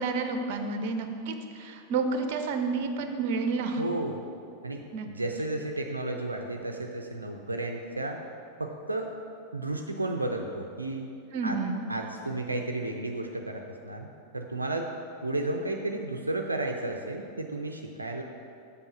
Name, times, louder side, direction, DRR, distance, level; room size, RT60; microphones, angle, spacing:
voice 1, 0.0-3.8 4.9-5.1 11.3-11.8, right 4 dB, 45° right, 6 dB, 0.8 m, -30 dB
voice 2, 3.8-4.2 4.6-8.2 8.6-9.1 9.5-11.1 11.4-11.6 11.9-14.1 14.3-14.9 15.2-18.2, right 2 dB, 80° right, 3 dB, 0.5 m, -33 dB
7.7 x 4.9 x 7.1 m, 2.5 s
figure-of-eight pair, 90°, 0 cm